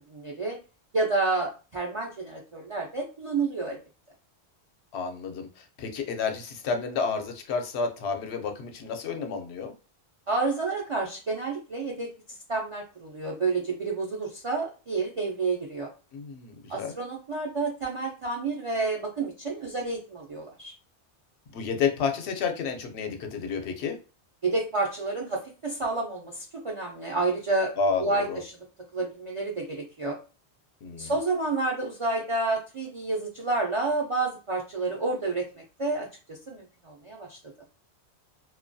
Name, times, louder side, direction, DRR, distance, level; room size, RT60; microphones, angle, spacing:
voice 1, 0.1-0.6 0.9-3.8 10.3-12.1 12.5-15.9 16.7-20.7 24.4-27.7 28.0-28.5 28.9-30.2 31.0-35.4 35.8-37.4, right 3 dB, 55° right, -2 dB, 0.3 m, -29 dB
voice 2, 4.9-9.7 16.1-16.9 21.5-24.0 27.8-28.4 30.8-31.1, left 5 dB, 75° left, 5 dB, 0.8 m, -30 dB
2.3 x 2.1 x 2.6 m, 0.33 s
omnidirectional pair, 1.1 m